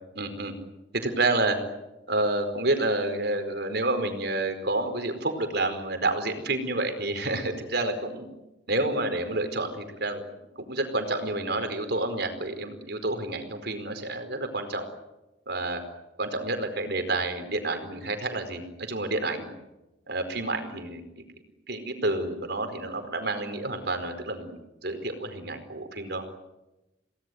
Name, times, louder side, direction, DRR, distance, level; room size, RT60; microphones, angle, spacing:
voice 1, 0.1-0.5 0.9-1.6 2.1-8.3 8.7-10.2 10.6-14.8 15.5-15.8 16.2-19.5 20.1-21.2 21.7-26.2, right 2 dB, 65° right, 8 dB, 4.7 m, -29 dB
29.0 x 19.0 x 9.5 m, 1.0 s
head